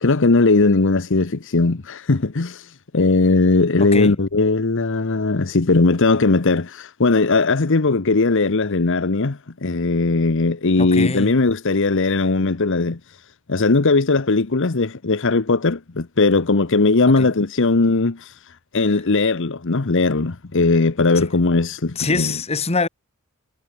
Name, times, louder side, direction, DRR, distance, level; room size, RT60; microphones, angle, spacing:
voice 1, 0.0-2.7 2.9-13.0 13.5-18.3 18.7-22.3, left 3 dB, 55° left, 0.9 m, -18 dB
voice 2, 3.8-4.2 10.8-11.3 17.2-17.3 21.1-21.2 21.9-22.9, left 3 dB, 30° left, 1.4 m, -24 dB
head